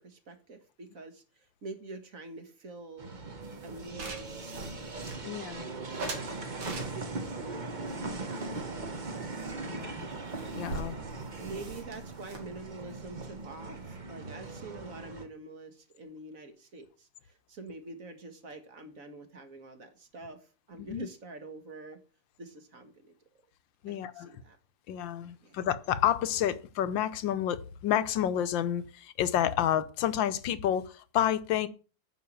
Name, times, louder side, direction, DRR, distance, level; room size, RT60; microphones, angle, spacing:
voice 1, 0.0-3.1 3.6-4.7 5.6-7.8 8.2-9.2 9.7-9.9 11.4-22.0 22.4-23.1 23.9-24.6 25.4-25.6, right 2 dB, 45° right, 1.9 m, -46 dB
sound 1, 3.0-15.3, right 3 dB, 30° right, 1.2 m, -39 dB
sound 2, 3.4-5.5 6.0-7.3 7.9-9.1 9.4-9.5 9.8-9.9 10.1-14.0, right 3 dB, 85° right, 3.2 m, -43 dB
voice 2, 5.2-5.7 9.6-10.1 10.5-11.0 20.8-21.1 23.8-24.3 24.9-31.7, left 10 dB, 80° left, 1.5 m, -29 dB
9.4 x 6.4 x 7.4 m
omnidirectional pair, 2.0 m